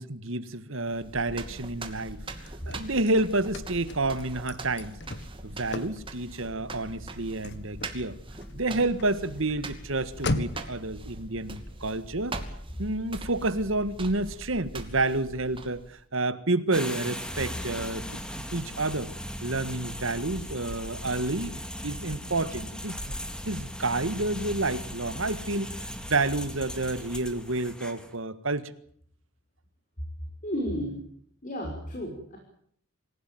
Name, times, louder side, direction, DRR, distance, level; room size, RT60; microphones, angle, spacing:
voice 1, 0.0-2.2 2.7-5.0 5.4-8.2 8.5-12.4 12.8-19.1 19.4-21.5 21.8-23.1 23.4-28.7, right 2 dB, 65° right, 14 dB, 1.7 m, -29 dB
sound 1, 0.9-16.0, right 2 dB, 25° right, 2.6 m, -42 dB
Car / Slam, 2.1-10.8, left 2 dB, 50° left, 1.8 m, -38 dB
sound 2, 16.7-28.1, equal, 5° left, 2.3 m, -38 dB
voice 2, 30.4-31.0 31.4-32.4, equal, 35° left, 1 dB, 5.9 m, -32 dB
27.0 x 16.5 x 9.3 m, 0.64 s
head